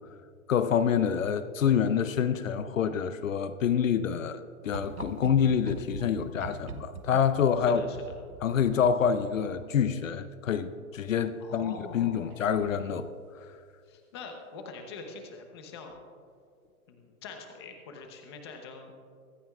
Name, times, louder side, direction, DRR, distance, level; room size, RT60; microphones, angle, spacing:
voice 1, 0.5-7.8 8.4-13.1, left 7 dB, 65° left, 0.6 m, -27 dB
sound 1, 4.7-9.9 11.6-12.0 12.3-12.4, right 5 dB, 80° right, 1.1 m, -44 dB
voice 2, 7.7-8.1 11.4-12.3 13.8-16.0 16.9-18.9, left 4 dB, 20° left, 0.8 m, -44 dB
23.5 x 9.1 x 2.4 m
hypercardioid pair, 170°, 43 cm